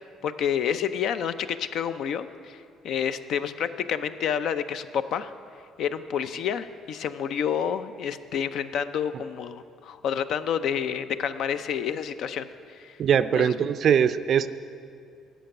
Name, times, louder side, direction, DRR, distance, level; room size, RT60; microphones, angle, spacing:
voice 1, 0.2-2.6 2.8-5.3 5.8-13.0 13.4-13.5, left 8 dB, 60° left, 12 dB, 0.5 m, -29 dB
voice 2, 13.0-14.5, right 8 dB, 50° right, 13 dB, 0.4 m, -21 dB
11.5 x 6.9 x 9.0 m, 2.4 s
cardioid pair, 130°, 0 cm